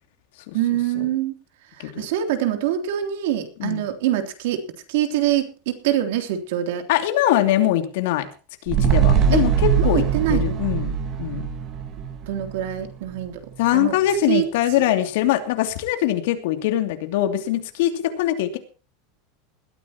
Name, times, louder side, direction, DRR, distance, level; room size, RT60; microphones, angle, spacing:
voice 1, 0.5-1.4 1.7-6.9 9.3-9.5 9.8-10.6 12.2-13.4 13.7-14.0 14.3-14.5 14.8-14.9, right 12 dB, 65° right, 6 dB, 3.2 m, -24 dB
voice 2, 6.9-8.3 8.7-9.5 9.8-10.0 10.3-11.5 13.6-18.6, left 13 dB, 65° left, 6 dB, 2.7 m, -22 dB
sound 1, 8.7-13.2 13.5-13.6, right 7 dB, 30° right, 1.8 m, -22 dB
20.5 x 14.0 x 3.0 m, 0.35 s
supercardioid pair, 165°, 0 cm